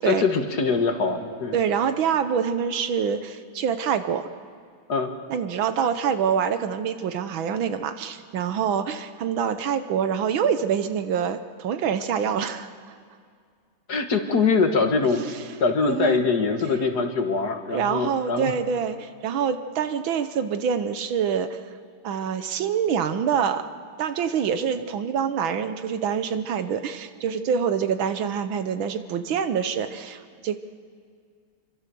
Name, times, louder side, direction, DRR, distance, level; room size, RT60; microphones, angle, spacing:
voice 1, 0.0-1.6 4.9-5.1 13.9-15.2 15.6-18.5, left 4 dB, 50° left, 6 dB, 1.8 m, -23 dB
voice 2, 1.5-4.3 5.3-12.7 15.8-16.2 17.7-21.6 22.0-23.6 24.0-30.6, right 7 dB, 70° right, 10 dB, 1.6 m, -25 dB
26.5 x 24.0 x 6.9 m, 2.1 s
omnidirectional pair, 2.4 m